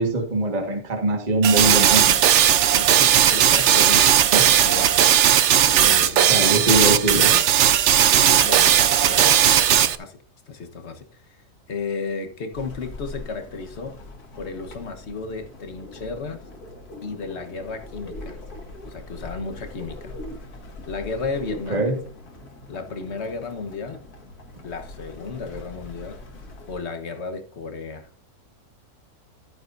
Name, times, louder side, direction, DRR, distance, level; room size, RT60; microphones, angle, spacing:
voice 1, 0.0-2.2 4.3-4.5 6.3-7.3 21.7-22.0, right 2 dB, 30° right, 1.7 m, -22 dB
sound 1, 1.4-10.0, right 10 dB, 60° right, 0.9 m, -17 dB
voice 2, 2.7-4.4 4.6-4.9 5.6-6.5 7.1-7.4 8.1-10.2 10.5-11.4 11.7-14.0 14.3-16.4 17.0-18.4 18.9-20.1 20.9-21.9 22.7-24.0 24.6-26.2 26.7-28.1, left 4 dB, 50° left, 1.4 m, -33 dB
sound 2, 12.5-26.8, left 1 dB, 85° left, 2.4 m, -41 dB
14.0 x 9.2 x 2.6 m
omnidirectional pair, 1.6 m